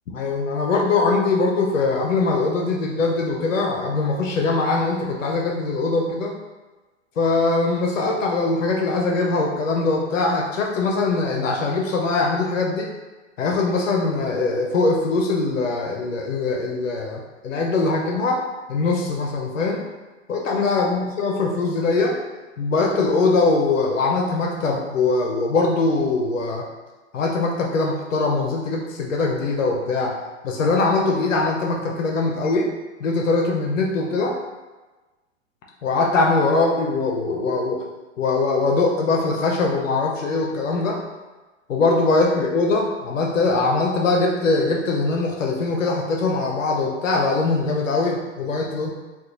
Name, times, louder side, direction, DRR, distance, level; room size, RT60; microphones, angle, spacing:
voice 1, 0.1-6.3 7.2-12.9 13.4-18.4 18.7-19.8 20.3-22.2 22.6-26.6 27.1-30.1 30.4-32.7 33.0-34.3 35.8-37.8 38.2-41.0 41.7-48.9, left 3 dB, 85° left, -1 dB, 0.6 m, -22 dB
2.9 x 2.3 x 3.6 m, 1.2 s
hypercardioid pair, 110°, 38 cm